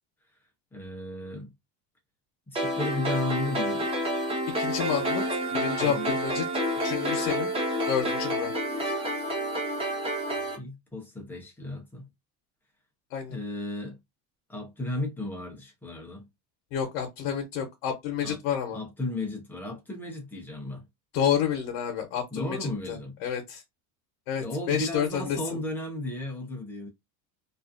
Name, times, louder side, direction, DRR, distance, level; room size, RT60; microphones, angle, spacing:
voice 1, 0.7-1.5 2.5-3.9 5.8-6.1 10.6-12.1 13.3-14.0 14.5-16.3 18.2-18.4 18.7-20.8 22.3-23.2 24.4-26.9, left 2 dB, 5° left, 0.4 m, -34 dB
sound 1, 2.6-10.6, equal, 15° right, 0.8 m, -29 dB
voice 2, 4.6-6.5 6.8-7.5 7.9-8.5 13.1-13.4 16.7-18.8 21.1-23.0 23.2-23.6 24.3-25.6, left 8 dB, 70° left, 0.8 m, -29 dB
2.4 x 2.4 x 2.4 m
cardioid pair, 155°, 46 cm